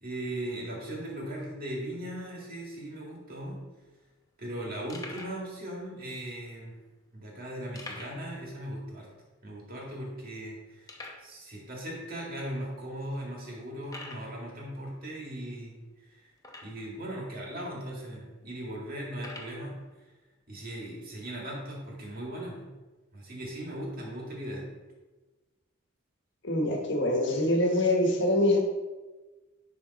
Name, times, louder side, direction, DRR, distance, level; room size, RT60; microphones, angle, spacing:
voice 1, 0.0-3.6 4.4-6.8 7.1-9.1 9.4-10.9 11.2-15.8 16.1-16.2 16.6-19.8 20.5-22.6 23.1-24.7, right 1 dB, 50° right, -3 dB, 2.0 m, -38 dB
sound 1, 3.7-3.9 4.4-4.5 4.9-5.4 6.2-6.3 7.7-8.3 8.6-8.7 9.2-9.3 9.8-9.9 10.9-11.3 12.1-12.2 12.8-12.9 13.8-14.3 16.4-16.9 17.7-17.8 19.1-19.6, left 2 dB, 20° left, 0.8 m, -44 dB
voice 2, 26.4-28.6, left 1 dB, 60° left, 1 dB, 1.3 m, -24 dB
10.5 x 3.6 x 4.1 m, 1.2 s
head